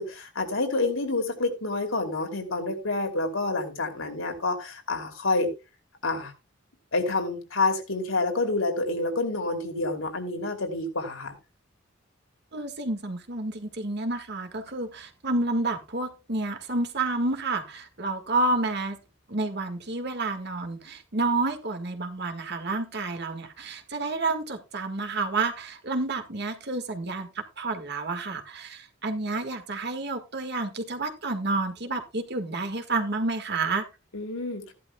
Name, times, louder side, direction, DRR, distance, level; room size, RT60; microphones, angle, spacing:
voice 1, 0.0-5.5 6.0-6.3 6.9-11.3 34.1-34.7, left 2 dB, 85° left, 2.8 m, -28 dB
voice 2, 12.5-19.0 19.3-33.9, right 2 dB, 55° right, 1.7 m, -29 dB
15.5 x 11.0 x 2.3 m
head